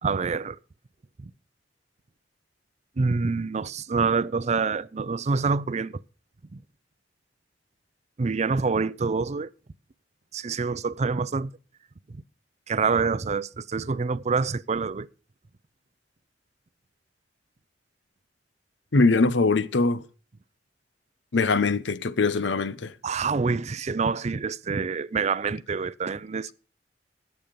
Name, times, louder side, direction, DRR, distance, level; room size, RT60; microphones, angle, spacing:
voice 1, 0.0-0.6 1.2-1.3 3.0-6.0 6.5-6.6 8.2-9.5 10.3-11.5 12.1-12.2 12.7-15.1 23.0-26.5, right 4 dB, 40° right, 0.5 m, -26 dB
voice 2, 18.9-20.0 21.3-22.9, left 3 dB, 80° left, 0.8 m, -22 dB
16.5 x 7.1 x 5.2 m
head